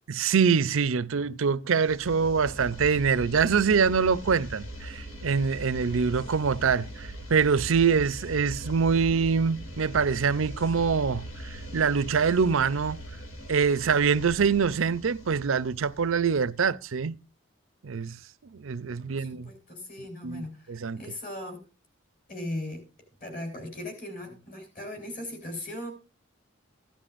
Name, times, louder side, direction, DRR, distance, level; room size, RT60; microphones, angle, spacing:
voice 1, 0.1-13.0 13.5-17.2 17.8-18.2 18.5-19.5 20.2-21.0, right 6 dB, 80° right, 0.5 m, -25 dB
sound 1, 1.8-16.6, equal, 80° left, 2.6 m, -40 dB
voice 2, 19.0-21.6 22.3-22.8 23.2-25.9, left 1 dB, 40° left, 4.4 m, -38 dB
16.0 x 11.5 x 2.5 m
head